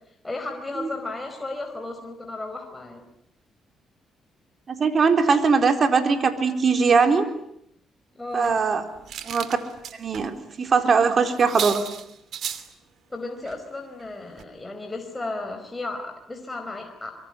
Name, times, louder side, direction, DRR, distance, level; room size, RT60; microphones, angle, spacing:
voice 1, 0.2-3.0 8.1-8.6 13.1-17.1, left 2 dB, 15° left, 4 dB, 4.6 m, -34 dB
voice 2, 4.7-7.3 8.3-8.8 9.2-9.6 10.0-11.8, right 5 dB, 45° right, 7 dB, 4.1 m, -20 dB
sound 1, 8.4-10.3 10.6-10.8 11.0-11.1 11.4-12.7 13.4-13.6 14.0-14.1 14.4-14.5, right 9 dB, 70° right, 2.8 m, -35 dB
24.5 x 24.0 x 9.9 m, 0.75 s
cardioid pair, 90°, 0 cm